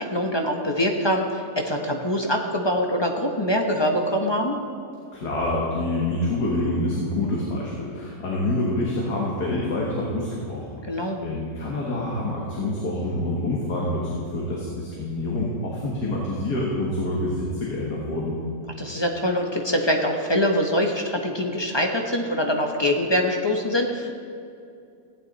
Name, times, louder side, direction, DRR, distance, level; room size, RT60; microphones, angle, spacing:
voice 1, 0.0-4.5 10.9-11.2 18.8-24.2, equal, 20° left, 2 dB, 0.8 m, -24 dB
voice 2, 5.1-18.4, left 1 dB, 90° left, -4 dB, 2.2 m, -27 dB
15.5 x 9.9 x 4.0 m, 2.5 s
omnidirectional pair, 1.7 m